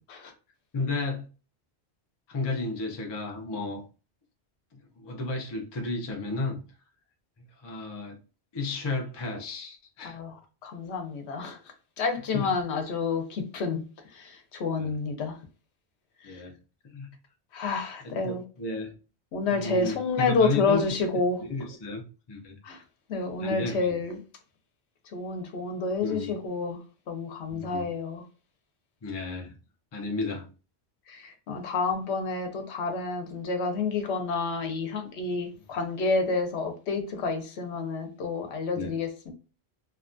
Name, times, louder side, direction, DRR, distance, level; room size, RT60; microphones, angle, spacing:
voice 1, 0.7-1.2 2.3-3.8 4.7-6.6 7.6-8.2 8.5-10.2 12.3-12.5 14.8-14.9 16.2-16.5 16.8-17.1 18.2-18.9 19.5-20.8 21.4-22.0 22.3-22.6 23.4-23.7 26.0-26.3 27.5-27.9 29.0-29.5 29.9-30.5 38.8-38.9, left 2 dB, 35° left, 0.4 m, -33 dB
voice 2, 10.0-11.6 12.0-15.4 16.2-16.4 17.5-18.4 19.3-21.4 22.6-22.8 23.1-24.2 25.0-26.8 27.1-28.2 31.1-39.3, left 4 dB, 85° left, 0.9 m, -29 dB
2.8 x 2.3 x 2.4 m
omnidirectional pair, 1.1 m